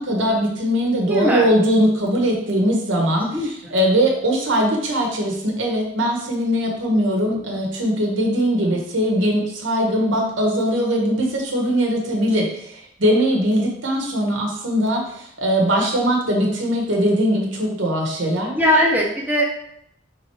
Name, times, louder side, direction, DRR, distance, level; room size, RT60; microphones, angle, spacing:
voice 1, 0.0-3.3 3.7-18.5, equal, 85° right, 0 dB, 1.0 m, -20 dB
voice 2, 1.1-1.5 3.3-3.7 15.0-15.1 18.5-19.4, equal, 10° right, -2 dB, 0.5 m, -20 dB
4.6 x 3.5 x 3.0 m, 0.70 s
head